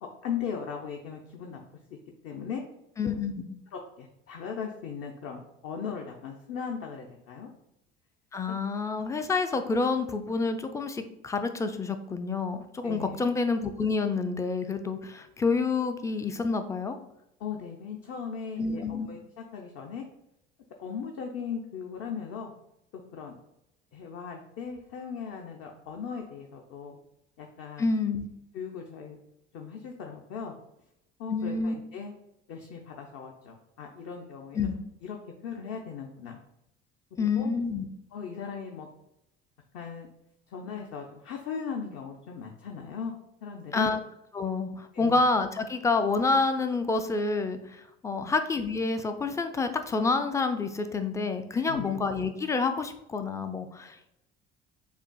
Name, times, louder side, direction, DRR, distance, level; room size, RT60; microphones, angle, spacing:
voice 1, 0.0-1.6 2.2-2.6 3.0-3.1 3.7-7.5 12.8-13.2 17.4-20.0 20.8-22.5 22.9-23.4 23.9-27.0 27.4-27.9 28.5-29.2 29.5-30.5 31.2-32.1 32.5-34.7 35.0-35.2 35.4-36.4 37.2-37.5 38.1-38.9 39.7-40.1 40.5-43.1 43.4-43.9 44.9-45.2 48.1-48.3 51.5-52.0, left 6 dB, 50° left, 2 dB, 0.6 m, -38 dB
voice 2, 3.0-3.3 8.3-17.0 18.6-19.1 27.8-28.3 31.3-31.7 34.5-34.8 37.2-37.8 43.7-44.0 44.3-47.6 48.0-54.1, left 4 dB, 10° left, 8 dB, 0.3 m, -28 dB
6.9 x 2.4 x 2.2 m, 0.84 s
figure-of-eight pair, 60°, 32 cm